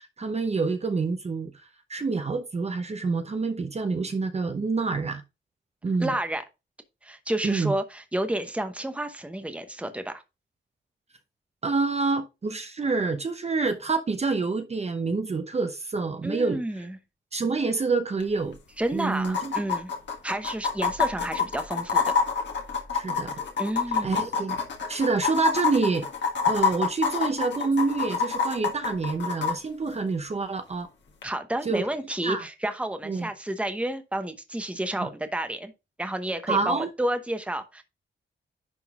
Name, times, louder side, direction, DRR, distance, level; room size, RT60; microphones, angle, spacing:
voice 1, 0.0-1.5 1.9-5.2 5.8-6.1 7.4-7.7 11.6-16.6 17.3-18.6 18.9-19.5 22.9-23.3 24.0-24.6 24.9-30.9 31.6-31.9 32.2-32.4 33.0-33.3 35.0-35.1 36.5-36.9, right 4 dB, 35° right, 0.8 m, -27 dB
voice 2, 6.0-6.4 7.0-10.2 16.2-17.0 18.8-19.9 20.2-22.1 23.6-24.1 31.2-35.7 36.0-37.8, right 1 dB, 5° right, 0.9 m, -30 dB
sound 1, 18.2-18.3 18.5-18.6 19.2-29.5 31.2-31.3, left 5 dB, 65° left, 1.7 m, -26 dB
10.5 x 3.8 x 3.6 m
wide cardioid pair, 135°, 20 cm